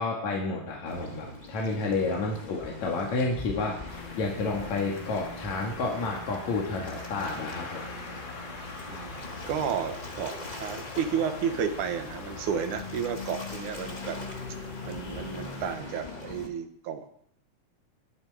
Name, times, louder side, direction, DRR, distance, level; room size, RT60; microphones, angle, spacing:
voice 1, 0.0-7.8, left 3 dB, 70° left, -1 dB, 3.4 m, -30 dB
Waves surf, 0.9-16.5, left 2 dB, 20° left, 1.3 m, -41 dB
sound 1, 3.9-15.8, left 3 dB, 40° left, 2.9 m, -43 dB
voice 2, 8.9-14.2 14.8-17.1, right 7 dB, 85° right, 7 dB, 2.9 m, -32 dB
20.5 x 9.8 x 4.9 m, 0.69 s
omnidirectional pair, 3.4 m